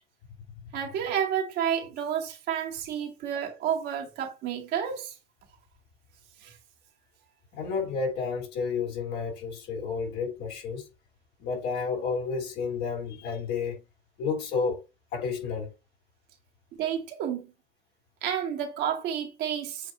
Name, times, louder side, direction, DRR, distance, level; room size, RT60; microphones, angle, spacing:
voice 1, 0.7-5.2 6.4-6.6 16.8-17.5 18.2-19.9, right 9 dB, 85° right, 1.8 m, -30 dB
voice 2, 7.5-10.8 11.4-13.8 14.2-14.8 15.1-15.7, left 5 dB, 85° left, 3.3 m, -31 dB
7.6 x 2.9 x 4.6 m
cardioid pair, 110°, 17 cm